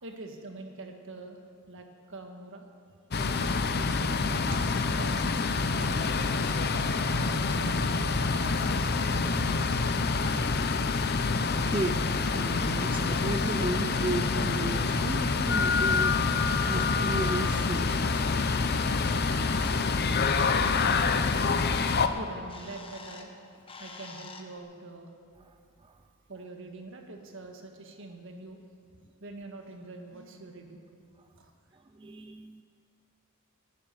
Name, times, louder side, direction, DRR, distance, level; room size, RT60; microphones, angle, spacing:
voice 1, 0.0-2.6 3.2-5.5 6.1-9.0 9.2-9.4 22.1-23.3 23.8-25.2 26.3-28.6 29.2-30.9 31.4-31.5, right 2 dB, 60° right, 3 dB, 1.7 m, -45 dB
sound 1, 3.1-22.1, left 4 dB, 50° left, 0.7 m, -27 dB
voice 2, 11.3-18.2 25.4-26.0 31.7-32.6, right 2 dB, 25° right, 7 dB, 0.4 m, -35 dB
Bird, 19.0-24.6, left 4 dB, 25° left, 1.1 m, -48 dB
11.5 x 11.0 x 9.2 m, 2.3 s
head